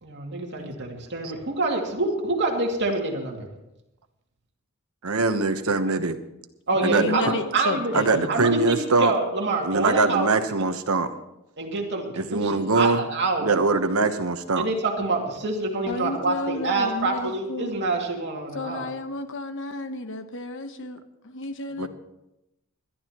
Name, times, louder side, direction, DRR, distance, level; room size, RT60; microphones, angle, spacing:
voice 1, 0.0-3.5 6.7-7.9 8.3-10.3 11.6-13.5 14.6-18.9 21.8-21.9, right 3 dB, 55° right, 0 dB, 2.5 m, -26 dB
voice 2, 5.0-6.2 6.8-7.3 7.9-9.1 9.6-11.1 12.1-13.0 13.4-14.7 21.8-21.9, right 3 dB, 75° right, 8 dB, 1.1 m, -22 dB
voice 3, 6.7-8.3 15.9-17.7 18.5-21.9, left 2 dB, 60° left, 8 dB, 1.1 m, -32 dB
21.5 x 12.0 x 3.1 m, 0.90 s
head